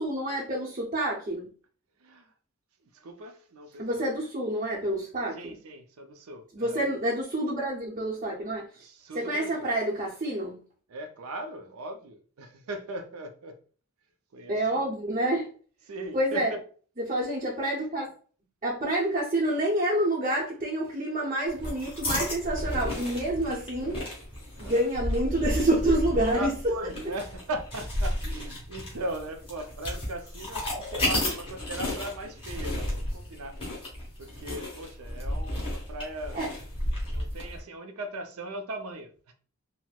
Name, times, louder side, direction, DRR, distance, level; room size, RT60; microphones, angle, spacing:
voice 1, 0.0-1.5 3.8-5.6 6.5-8.7 9.1-10.6 14.5-15.5 16.1-16.5 17.0-18.1 18.6-24.0 24.6-26.7 36.3-36.5, right 1 dB, 35° right, 0.7 m, -28 dB
voice 2, 3.0-3.9 5.4-6.9 8.8-9.7 10.9-13.6 14.3-14.8 15.9-16.6 24.6-24.9 26.3-33.6 34.2-36.4 37.0-39.3, right 1 dB, 75° right, 0.5 m, -39 dB
sound 1, 21.5-37.6, left 1 dB, 25° left, 1.3 m, -33 dB
4.2 x 2.0 x 2.3 m
head